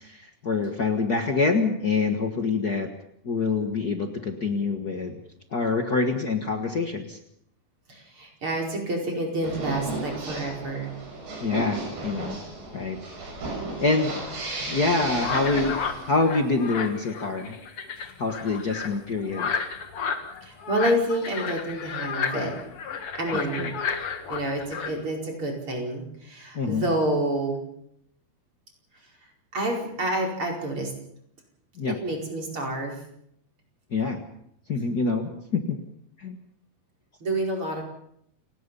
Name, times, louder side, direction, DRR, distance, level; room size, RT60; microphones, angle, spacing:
voice 1, 0.0-2.9 3.2-5.2 5.5-7.2 11.4-12.4 12.7-13.3 13.8-14.2 14.7-17.6 18.2-19.5 23.5-23.7 26.5-26.8 31.8-31.9 33.9-34.2 34.7-35.8 36.2-36.4, left 3 dB, 90° left, 4 dB, 0.8 m, -26 dB
voice 2, 7.9-10.9 20.4-22.5 23.2-23.7 24.3-27.6 29.5-30.9 32.0-33.0 37.2-37.8, right 1 dB, 30° right, 0 dB, 5.5 m, -28 dB
sound 1, 9.4-16.3, right 2 dB, 85° right, 8.6 m, -34 dB
sound 2, 15.2-24.9, left 6 dB, 45° left, 2.0 m, -32 dB
29.5 x 18.5 x 5.5 m, 0.71 s
omnidirectional pair, 4.5 m